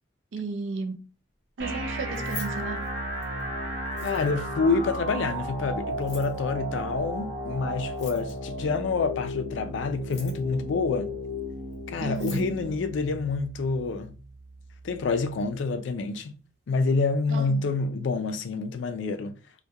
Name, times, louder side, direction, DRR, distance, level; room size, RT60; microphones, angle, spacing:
voice 1, 0.3-1.0 1.6-2.8 12.0-12.4 17.3-17.7, right 4 dB, 85° right, 0.4 m, -33 dB
sound 1, 1.6-15.6, equal, 60° right, 0.9 m, -35 dB
Keys jangling, 2.0-3.4 3.9-4.5 5.9-6.4 7.9-8.5 9.9-10.6 11.7-11.8 12.0-12.5, left 3 dB, 35° left, 0.8 m, -44 dB
voice 2, 4.0-11.1 11.9-14.2 14.8-16.3 16.7-19.4, left 4 dB, 70° left, 0.4 m, -27 dB
2.3 x 2.1 x 2.7 m
head